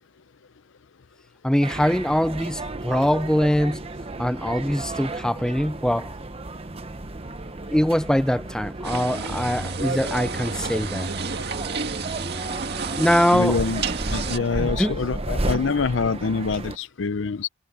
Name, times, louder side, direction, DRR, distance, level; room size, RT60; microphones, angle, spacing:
voice 1, 1.4-3.8 4.2-6.1 7.7-11.1 12.9-13.5 14.6-15.0, equal, 5° left, 0.5 m, -22 dB
sound 1, 1.6-16.8, right 2 dB, 30° right, 1.0 m, -33 dB
sound 2, 8.8-14.4, right 4 dB, 60° right, 2.0 m, -30 dB
voice 2, 13.3-13.8 14.1-17.5, left 4 dB, 80° left, 0.6 m, -25 dB
head